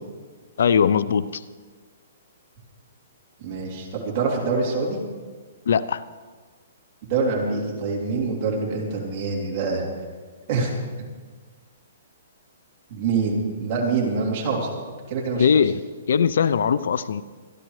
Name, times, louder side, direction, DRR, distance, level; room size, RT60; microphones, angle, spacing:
voice 1, 0.6-1.4 5.7-6.0 15.3-15.8 16.1-17.2, left 7 dB, 70° left, 17 dB, 0.5 m, -20 dB
voice 2, 3.4-5.0 7.1-9.8 10.5-10.7 12.9-14.7 15.1-15.5, right 4 dB, 30° right, -3 dB, 3.3 m, -25 dB
25.5 x 11.5 x 3.2 m, 1.5 s
hypercardioid pair, 170°, 0 cm